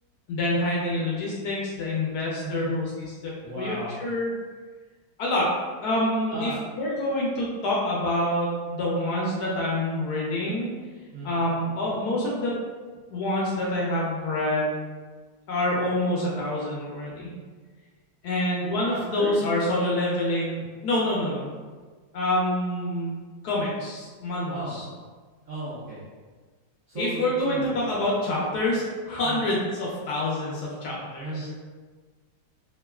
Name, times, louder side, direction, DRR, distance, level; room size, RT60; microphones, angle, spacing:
voice 1, 0.3-4.3 5.2-5.5 5.8-6.5 6.8-10.7 11.2-12.5 13.1-14.7 15.5-17.3 18.2-21.5 22.1-24.8 26.9-31.5, left 1 dB, 70° left, -4 dB, 1.0 m, -27 dB
voice 2, 2.4-2.7 3.4-4.0 6.2-6.6 11.1-11.4 18.9-19.4 24.5-24.8 25.5-26.0 26.9-27.8 29.2-29.5 31.2-31.5, right 2 dB, 75° right, -9 dB, 0.7 m, -35 dB
3.0 x 2.3 x 2.2 m, 1.4 s
omnidirectional pair, 2.0 m